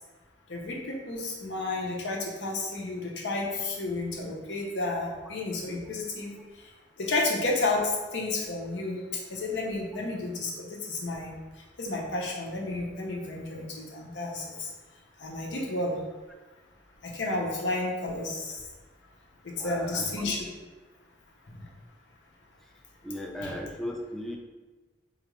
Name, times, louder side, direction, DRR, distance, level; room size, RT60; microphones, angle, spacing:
voice 1, 0.5-6.3 7.0-9.0 9.3-11.3 11.8-14.7 15.2-16.0 17.0-18.6 19.4-20.5 21.5-21.6 23.4-23.5, left 2 dB, 85° left, -1 dB, 0.8 m, -31 dB
voice 2, 19.6-20.4 23.0-24.4, equal, ahead, 1 dB, 0.3 m, -37 dB
4.0 x 2.5 x 3.1 m, 1.2 s
head